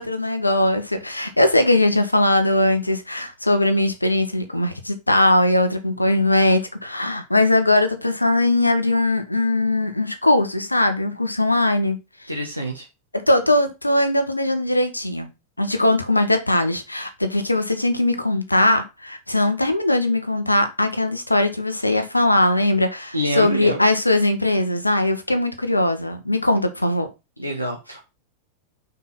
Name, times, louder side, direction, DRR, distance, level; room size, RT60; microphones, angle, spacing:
voice 1, 0.0-12.3 13.1-15.3 15.6-27.1, left 1 dB, 85° left, 1.1 m, -20 dB
voice 2, 12.3-12.9 23.1-23.8 27.4-28.0, equal, 90° right, 1.2 m, -26 dB
5.7 x 4.5 x 5.5 m
figure-of-eight pair, 90°, 0 cm